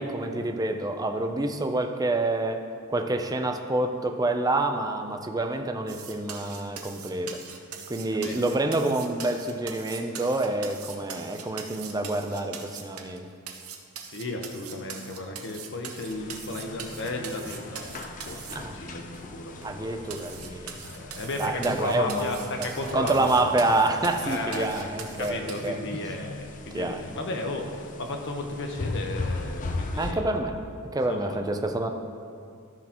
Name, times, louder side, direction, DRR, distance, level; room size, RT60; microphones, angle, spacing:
voice 1, 0.0-2.6 2.9-7.4 7.9-13.3 18.5-18.8 19.6-20.8 21.4-22.3 22.6-22.7 22.9-25.8 26.7-27.0 30.0-30.6 30.9-31.9, right 2 dB, 15° right, 5 dB, 0.5 m, -27 dB
sound 1, 5.9-13.2 13.5-18.6 19.1-19.2 19.6-19.7 20.1-25.7, right 7 dB, 75° right, 0.9 m, -41 dB
voice 2, 8.1-8.4 14.0-20.1 20.8-23.3 24.2-24.9 25.2-30.3 31.1-31.4, left 2 dB, 55° left, 3 dB, 1.0 m, -34 dB
sound 2, 16.0-30.1, left 2 dB, 35° left, 0.6 m, -39 dB
13.5 x 6.4 x 3.0 m, 2.3 s
head